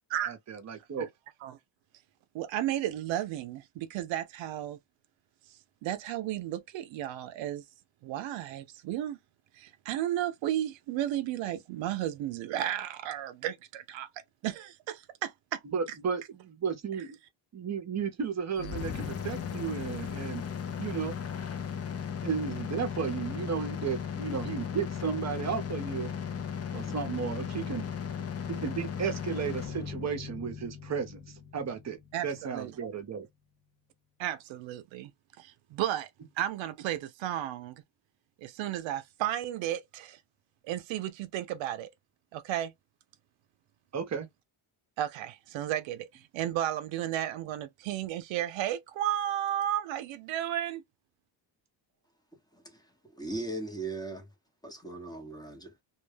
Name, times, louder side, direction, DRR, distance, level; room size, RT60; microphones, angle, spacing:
voice 1, 0.3-1.1 15.7-17.2 17.5-20.4 20.8-21.2 22.2-26.1 26.7-27.8 28.5-31.2 31.5-33.3 43.9-44.3, right 6 dB, 35° right, 0.7 m, -34 dB
voice 2, 2.3-4.8 5.5-7.6 8.0-9.2 9.5-15.6 15.9-16.0 17.0-17.1 32.1-32.8 34.2-35.1 35.4-36.1 36.4-37.8 38.4-40.2 40.6-41.9 42.3-42.7 45.0-50.8, right 12 dB, 75° right, 0.6 m, -33 dB
sound 1, 18.6-32.5, left 7 dB, 35° left, 0.5 m, -37 dB
voice 3, 52.5-54.3 54.6-55.7, right 2 dB, 10° left, 0.8 m, -39 dB
2.3 x 2.1 x 3.2 m
cardioid pair, 105°, 47 cm